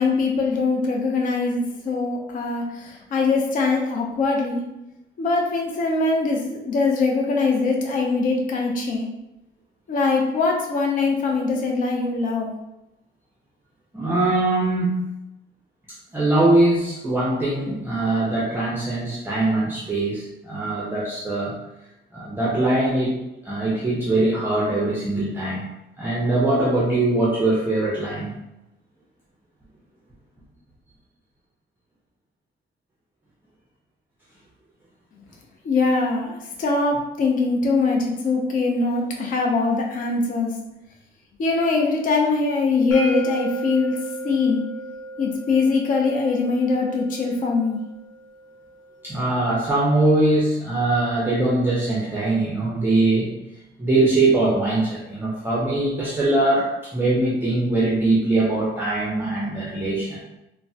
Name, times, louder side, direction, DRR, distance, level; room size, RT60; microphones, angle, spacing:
voice 1, 0.0-4.6 5.2-9.1 9.9-12.5 35.6-40.5 41.4-44.0 44.2-44.6 45.2-47.8, left 3 dB, 45° left, 0 dB, 0.5 m, -22 dB
voice 2, 13.9-14.9 16.1-21.5 22.1-23.1 23.4-25.7 26.0-28.3 49.0-53.3 53.8-60.2, right 2 dB, 10° right, -6 dB, 0.5 m, -22 dB
sound 1, 42.9-48.7, right 2 dB, 80° left, 0.8 m, -34 dB
3.2 x 2.0 x 2.6 m, 0.90 s
cardioid pair, 130°, 20 cm